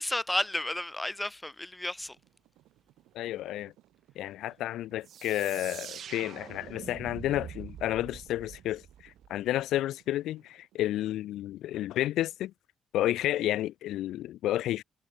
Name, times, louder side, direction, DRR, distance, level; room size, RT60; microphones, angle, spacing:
voice 1, 0.0-2.2, left 1 dB, 10° left, 0.8 m, -32 dB
sound 1, 2.1-11.2, right 15 dB, 90° right, 4.4 m, -63 dB
voice 2, 3.1-3.7 4.2-12.5 12.9-14.8, left 14 dB, 85° left, 0.8 m, -31 dB
sound 2, 5.0-9.6, right 9 dB, 65° right, 1.2 m, -45 dB
cardioid pair, 90°, 0 cm